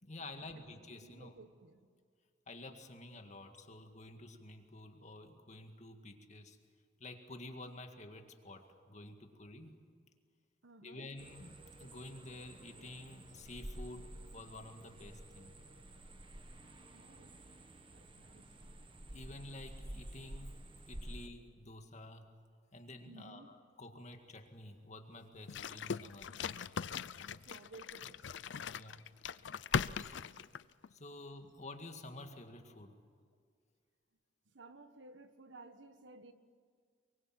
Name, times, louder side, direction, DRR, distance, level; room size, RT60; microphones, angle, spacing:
voice 1, 0.0-1.3 2.5-6.6 7.0-9.8 10.8-15.5 19.1-20.6 20.9-22.3 22.7-26.3 28.7-29.1 29.9-30.1 30.9-33.0, left 2 dB, 40° left, 5 dB, 2.0 m, -50 dB
voice 2, 1.0-1.8 10.6-11.1 16.6-17.4 17.9-18.5 22.7-23.5 27.3-28.3 29.1-29.2 29.5-29.6 30.9-31.0 34.5-36.3, right 3 dB, 85° right, 9 dB, 1.5 m, -57 dB
sound 1, 11.2-21.3, right 1 dB, 30° right, 1.5 m, -51 dB
sound 2, 25.5-30.9, left 6 dB, 75° left, 0.5 m, -40 dB
23.5 x 23.5 x 7.7 m, 2.1 s
head